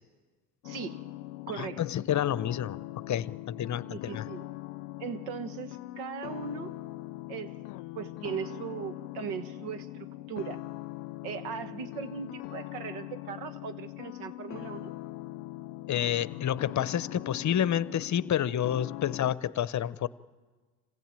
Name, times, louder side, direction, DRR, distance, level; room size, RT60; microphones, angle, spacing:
sound 1, 0.6-19.4, left 18 dB, 90° left, 0.6 m, -41 dB
voice 1, 0.6-1.1 1.5-1.8 3.9-4.4 5.0-6.7 7.3-7.6 8.0-10.6 11.2-14.9, right 7 dB, 80° right, 10 dB, 1.8 m, -38 dB
voice 2, 1.6-2.8 3.1-4.2 15.9-20.1, left 10 dB, 40° left, 17 dB, 0.9 m, -29 dB
27.0 x 16.0 x 9.0 m, 1.4 s
supercardioid pair, 80°, 46 cm